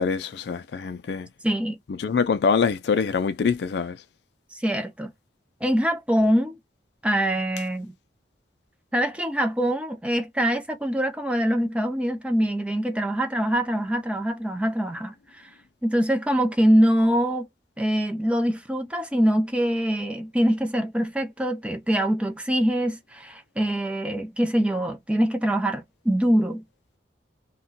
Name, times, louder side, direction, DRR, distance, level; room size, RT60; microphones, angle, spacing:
voice 1, 0.0-1.3 1.9-4.0, left 5 dB, 65° left, 0.4 m, -24 dB
voice 2, 1.4-1.8 4.5-5.1 5.6-6.6 7.0-7.9 8.9-15.5 15.8-17.5 17.8-26.6, equal, 5° right, 0.5 m, -24 dB
2.3 x 2.2 x 3.8 m
head